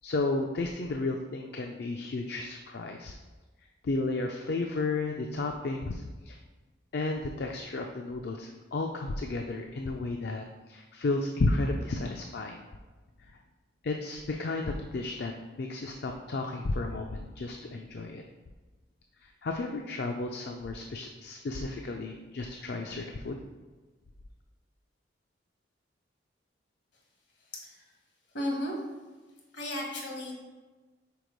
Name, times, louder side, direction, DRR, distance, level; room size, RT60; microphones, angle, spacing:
voice 1, 0.0-3.2 3.8-6.4 6.9-12.6 13.3-13.4 13.8-15.3 15.6-18.2 19.2-23.4, left 2 dB, 60° left, 3 dB, 0.4 m, -33 dB
voice 2, 27.5-27.8 28.3-28.7 29.5-30.3, left 1 dB, 75° left, 0 dB, 1.5 m, -34 dB
4.7 x 4.2 x 5.2 m, 1.3 s
head